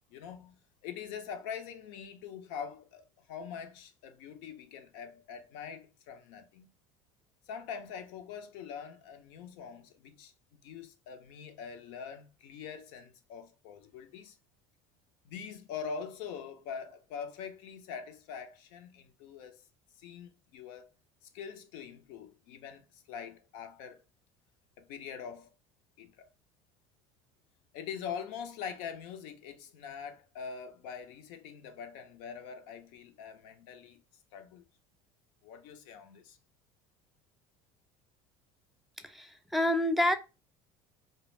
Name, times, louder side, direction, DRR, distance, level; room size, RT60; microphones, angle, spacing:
voice 1, 0.1-6.7 7.5-10.3 10.6-14.4 15.2-19.6 20.0-20.9 21.2-24.0 24.8-25.5 26.0-26.3 27.7-34.0 34.3-34.6 35.4-36.4, left 7 dB, 70° left, 0.5 m, -43 dB
voice 2, 39.0-40.1, left 1 dB, ahead, 0.4 m, -28 dB
2.2 x 2.0 x 3.1 m
supercardioid pair, 90°, 13 cm